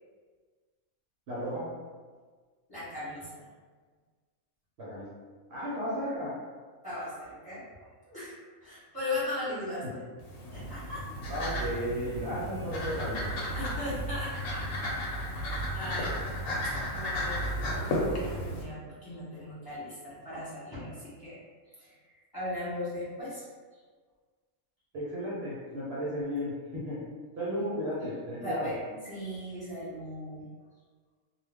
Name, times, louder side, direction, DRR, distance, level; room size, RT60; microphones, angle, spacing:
voice 1, 1.3-1.7 4.8-5.1 5.5-6.3 9.8-9.9 11.3-13.3 24.9-27.0 27.4-28.7, equal, 60° right, -7 dB, 0.9 m, -34 dB
voice 2, 2.7-3.4 6.8-7.6 8.1-8.3 8.6-10.0 10.5-11.0 13.5-14.6 15.7-16.4 16.9-17.4 17.8-21.4 21.8-21.9 22.3-23.5 27.5-27.7 28.4-30.4, left 1 dB, 20° left, -11 dB, 1.1 m, -38 dB
sound 1, 10.2-18.6, equal, 85° left, 1.0 m, -33 dB
2.3 x 2.2 x 3.4 m, 1.5 s
omnidirectional pair, 1.3 m